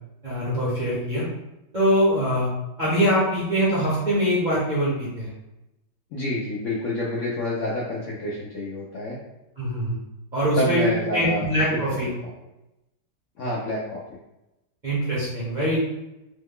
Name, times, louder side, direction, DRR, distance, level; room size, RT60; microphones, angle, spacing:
voice 1, 0.2-1.3 1.7-2.5 2.8-5.3 9.6-10.0 10.3-10.9 11.1-12.1 14.8-15.8, equal, 40° right, -8 dB, 0.7 m, -23 dB
voice 2, 6.1-9.2 10.6-11.5 11.9-12.0 13.4-14.0, left 1 dB, 65° left, -5 dB, 0.8 m, -28 dB
3.1 x 2.2 x 3.5 m, 0.94 s
omnidirectional pair, 1.8 m